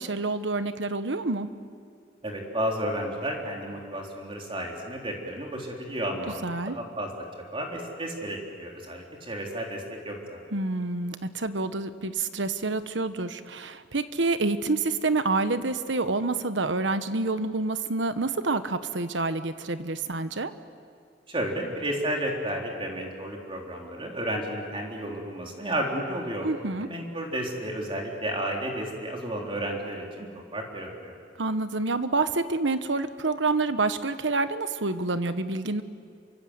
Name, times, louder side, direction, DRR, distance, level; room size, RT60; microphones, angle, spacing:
voice 1, 0.0-1.5 6.4-6.8 10.5-20.5 26.4-26.9 31.4-35.8, right 3 dB, 85° right, 11 dB, 1.3 m, -28 dB
voice 2, 2.2-6.4 6.7-7.1 7.5-10.4 21.3-26.5 26.8-30.3 30.5-31.1, right 1 dB, 30° right, 0 dB, 3.8 m, -32 dB
28.0 x 24.0 x 8.1 m, 2.2 s
head